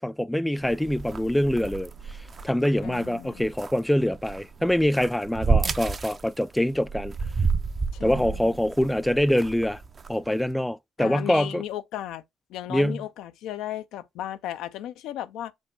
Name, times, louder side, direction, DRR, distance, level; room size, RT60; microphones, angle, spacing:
voice 1, 0.0-1.9 2.4-7.1 8.0-9.8 10.1-11.6 12.7-13.0, left 1 dB, 5° left, 0.3 m, -24 dB
sound 1, 0.6-10.4, right 4 dB, 40° right, 0.6 m, -31 dB
voice 2, 2.8-3.5 7.9-8.7 11.0-12.2 12.5-15.5, left 12 dB, 90° left, 0.5 m, -35 dB
5.3 x 2.2 x 4.3 m
cardioid pair, 90°, 0 cm